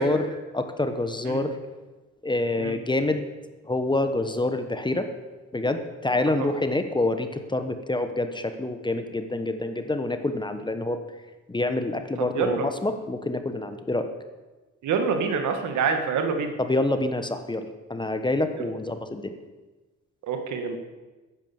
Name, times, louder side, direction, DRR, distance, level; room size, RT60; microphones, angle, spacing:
voice 1, 0.0-1.5 2.2-3.3 3.6-5.1 5.5-11.0 11.5-14.1 16.6-19.3, left 2 dB, 15° left, 8 dB, 1.1 m, -27 dB
voice 2, 12.2-12.7 14.8-16.6 18.6-18.7 20.2-20.8, right 5 dB, 75° right, 6 dB, 1.8 m, -26 dB
10.5 x 9.5 x 7.2 m, 1.2 s
cardioid pair, 90°, 30 cm